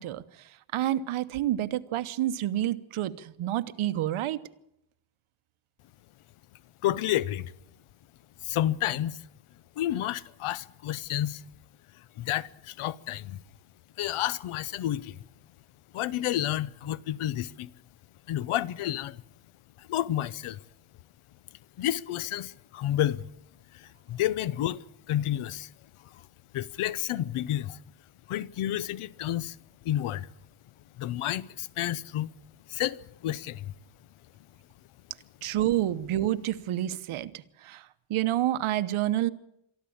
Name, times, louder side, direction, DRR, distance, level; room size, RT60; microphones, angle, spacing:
voice 1, 0.0-4.4 35.4-39.3, right 13 dB, 80° right, 1.1 m, -29 dB
voice 2, 6.8-7.5 8.4-9.2 9.8-11.4 12.2-13.4 14.0-15.2 15.9-17.7 18.3-19.2 19.8-20.6 21.8-23.2 23.7-25.7 26.1-26.2 26.5-27.8 28.3-29.6 29.8-30.3 31.0-32.3 32.7-33.7, left 13 dB, 90° left, 0.9 m, -30 dB
23.5 x 14.0 x 8.7 m
cardioid pair, 160°, 49 cm